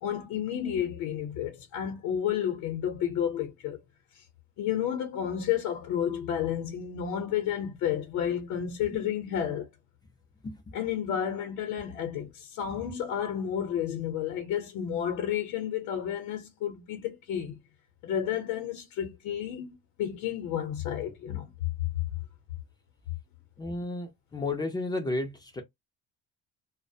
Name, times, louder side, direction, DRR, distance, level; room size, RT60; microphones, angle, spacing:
voice 1, 0.0-3.8 4.1-4.2 4.6-9.7 10.7-17.6 18.0-22.0, left 9 dB, 75° left, 0.7 m, -31 dB
voice 2, 10.4-10.7 12.6-12.9 23.6-25.6, left 2 dB, 15° left, 0.3 m, -33 dB
2.3 x 2.1 x 2.6 m
cardioid pair, 170°, 29 cm